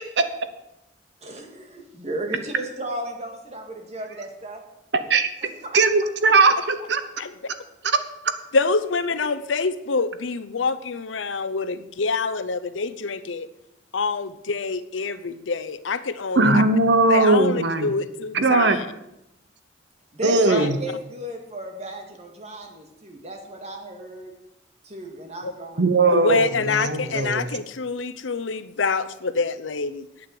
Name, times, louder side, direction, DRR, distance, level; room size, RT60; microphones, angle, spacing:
voice 1, 1.2-4.6 5.4-5.8 6.2-6.5 9.2-9.4 20.1-24.3 24.8-26.0, right 1 dB, 35° right, 3 dB, 2.1 m, -35 dB
voice 2, 4.9-5.3 5.7-7.0 16.4-17.9 18.3-18.8 20.2-20.8 25.8-27.5, right 3 dB, 65° right, 10 dB, 1.0 m, -19 dB
voice 3, 8.5-13.5 13.9-16.5 17.1-18.8 20.5-20.7 25.4-25.5 26.1-30.1, left 4 dB, 85° left, 14 dB, 0.7 m, -26 dB
9.3 x 8.5 x 7.8 m, 0.86 s
head